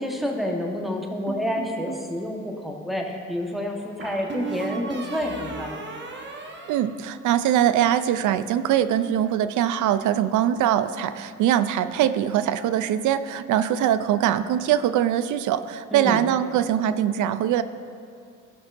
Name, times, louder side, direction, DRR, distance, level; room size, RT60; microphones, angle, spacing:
voice 1, 0.0-5.7 15.9-16.3, left 1 dB, ahead, 1 dB, 1.1 m, -29 dB
sound 1, 1.3-2.1 4.0-7.6, right 4 dB, 40° right, 1.1 m, -36 dB
voice 2, 6.7-17.6, right 10 dB, 75° right, 13 dB, 0.5 m, -22 dB
15.5 x 6.1 x 2.6 m, 2.4 s
cardioid pair, 90°, 30 cm